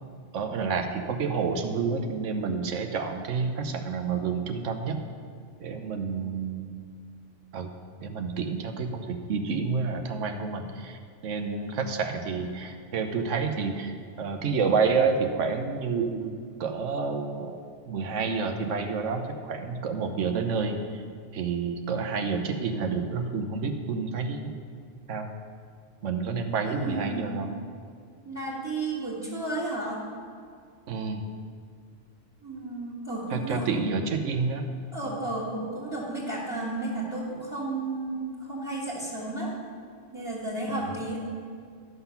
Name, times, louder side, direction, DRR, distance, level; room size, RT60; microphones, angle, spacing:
voice 1, 0.3-5.0 5.6-6.7 7.5-7.7 8.0-16.3 16.6-17.6 17.9-21.0 21.3-24.5 25.1-25.3 26.0-27.6 30.9-31.2 33.3-34.7 35.0-35.2 40.7-41.2, right 5 dB, 90° right, 6 dB, 1.2 m, -29 dB
voice 2, 26.6-27.4 28.2-30.0 32.4-33.7 34.9-39.5 40.1-41.2, right 2 dB, 15° right, -5 dB, 1.7 m, -33 dB
12.5 x 5.9 x 5.7 m, 2.2 s
omnidirectional pair, 1.2 m